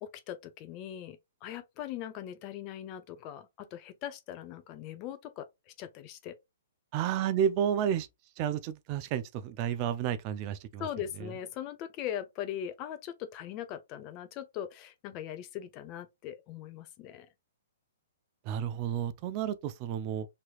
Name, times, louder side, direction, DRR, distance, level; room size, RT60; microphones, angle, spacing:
voice 1, 0.0-6.3 10.8-17.3, left 10 dB, 35° left, 0.5 m, -40 dB
voice 2, 6.9-8.1 8.4-10.9 18.5-20.3, right 9 dB, 35° right, 0.4 m, -31 dB
3.1 x 3.0 x 2.3 m
hypercardioid pair, 140°, 0 cm